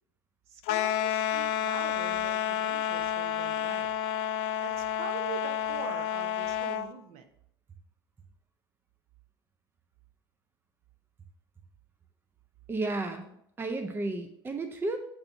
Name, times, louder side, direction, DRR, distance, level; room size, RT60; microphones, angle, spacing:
voice 1, 0.5-3.9 4.6-7.3, right 6 dB, 50° right, 6 dB, 1.0 m, -43 dB
sound 1, 0.6-6.9, left 10 dB, 50° left, 0.4 m, -30 dB
voice 2, 12.7-15.0, right 2 dB, 15° right, 7 dB, 0.6 m, -33 dB
8.6 x 2.9 x 5.7 m, 0.73 s
figure-of-eight pair, 75°, 13 cm